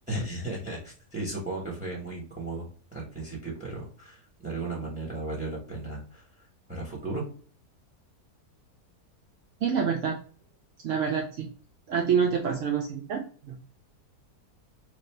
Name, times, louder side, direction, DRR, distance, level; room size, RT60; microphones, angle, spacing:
voice 1, 0.1-7.3, right 2 dB, 5° right, -3 dB, 0.9 m, -35 dB
voice 2, 9.6-10.2 10.8-11.5 11.9-13.6, right 6 dB, 70° right, 1 dB, 0.7 m, -27 dB
3.2 x 2.6 x 4.2 m, 0.42 s
omnidirectional pair, 1.7 m